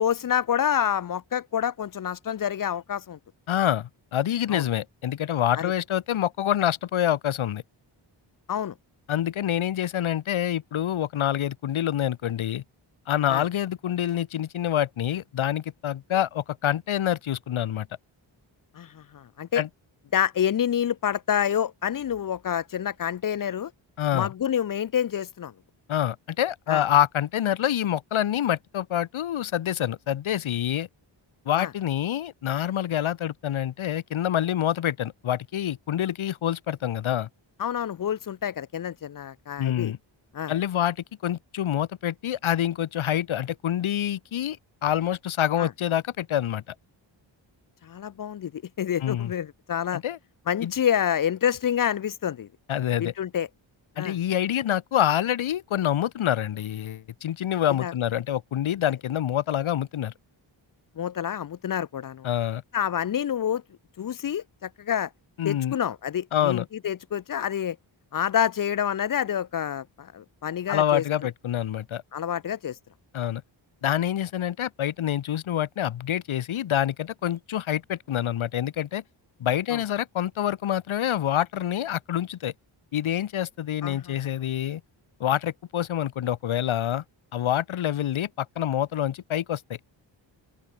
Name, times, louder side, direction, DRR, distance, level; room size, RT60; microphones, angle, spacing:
voice 1, 0.0-3.2 4.5-4.7 5.6-5.7 8.5-8.7 13.3-13.4 18.7-19.6 20.1-23.7 24.1-25.5 26.7-26.8 31.5-31.7 37.6-39.9 40.3-40.5 45.6-45.7 47.8-50.0 50.5-52.5 53.0-53.5 54.0-54.2 57.8-57.9 61.0-62.3 62.7-63.6 64.0-65.1 65.4-67.8 68.1-71.0 72.1-72.8 79.7-79.8 83.8-84.2, left 9 dB, 45° left, 0.5 m, -28 dB
voice 2, 3.5-7.6 9.1-12.6 13.1-17.9 19.5-19.7 24.0-24.3 25.9-30.9 31.4-37.3 39.6-40.0 40.5-41.0 41.2-44.6 44.8-46.6 49.0-49.3 49.9-50.2 50.6-50.7 52.7-53.1 54.0-60.1 62.2-62.6 65.4-65.7 66.3-66.6 70.7-72.0 73.1-73.4 73.8-79.0 79.4-82.5 82.9-84.8 85.2-87.0 87.3-89.8, left 11 dB, 85° left, 1.2 m, -26 dB
open air
wide cardioid pair, 110°, 47 cm